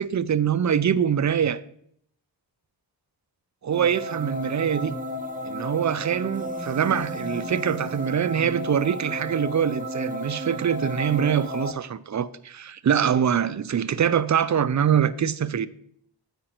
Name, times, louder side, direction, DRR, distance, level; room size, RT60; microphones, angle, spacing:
voice 1, 0.0-1.6 3.6-5.0 5.4-15.7, right 8 dB, 45° right, 0.4 m, -24 dB
sound 1, 3.7-11.7, equal, 20° right, 0.8 m, -33 dB
9.0 x 5.1 x 4.3 m
wide cardioid pair, 75°, 43 cm